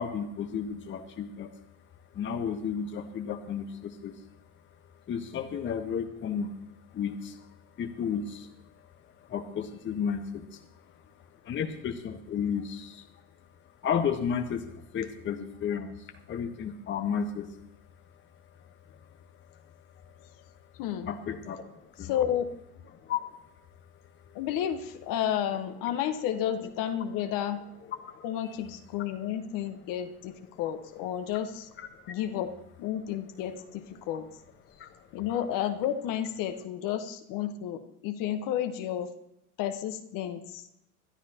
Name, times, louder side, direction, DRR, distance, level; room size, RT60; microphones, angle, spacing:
voice 1, 0.0-1.5 2.1-4.3 4.5-17.7 18.0-20.7 21.1-22.1 22.9-24.4 28.0-28.3 31.8-32.2 34.8-35.1, left 7 dB, 25° left, 7 dB, 1.2 m, -35 dB
voice 2, 22.0-22.4 24.3-27.6 28.2-31.7 32.1-32.5 32.8-34.3 35.1-39.1 39.6-40.7, left 10 dB, 45° left, 7 dB, 1.3 m, -31 dB
21.5 x 11.5 x 2.9 m, 0.82 s
hypercardioid pair, 100°, 45 cm